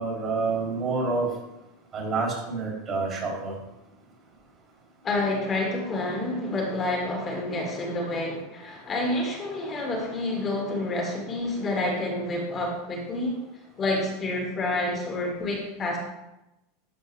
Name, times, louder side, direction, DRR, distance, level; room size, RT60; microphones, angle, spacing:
voice 1, 0.0-1.4 1.9-3.6 8.8-8.9, right 3 dB, 30° right, 2.9 m, -28 dB
voice 2, 5.0-13.4 13.8-16.0, left 2 dB, 30° left, 2.1 m, -28 dB
12.0 x 4.4 x 3.4 m
supercardioid pair, 120°, 0 cm